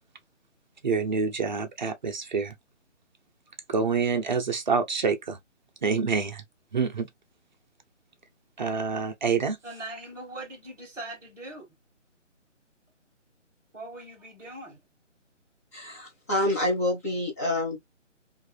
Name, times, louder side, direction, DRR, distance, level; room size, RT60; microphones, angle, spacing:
voice 1, 0.8-2.5 3.7-5.4 5.8-6.4 6.7-7.1 8.6-9.6, right 5 dB, 40° right, 0.7 m, -27 dB
voice 2, 9.6-11.7 13.7-14.8, right 2 dB, 10° right, 1.2 m, -41 dB
voice 3, 15.7-17.8, left 1 dB, 10° left, 0.8 m, -27 dB
4.6 x 2.6 x 2.3 m
figure-of-eight pair, 150°, 38 cm